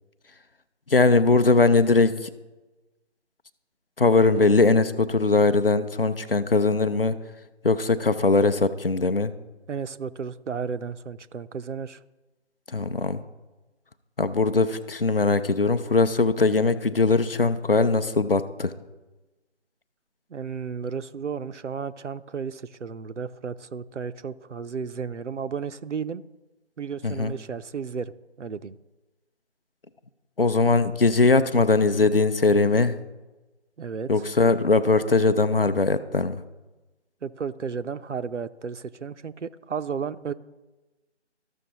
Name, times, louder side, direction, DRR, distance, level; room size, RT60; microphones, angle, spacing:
voice 1, 0.9-2.3 4.0-7.2 7.6-9.3 12.7-13.2 14.2-18.7 27.0-27.3 30.4-33.0 34.1-36.4, left 3 dB, 55° left, 12 dB, 0.6 m, -20 dB
voice 2, 9.7-12.0 20.3-26.2 26.8-28.1 28.4-28.8 33.8-34.2 37.2-40.3, right 6 dB, 85° right, 13 dB, 0.6 m, -33 dB
14.0 x 6.3 x 2.9 m, 1.1 s
figure-of-eight pair, 165°, 35 cm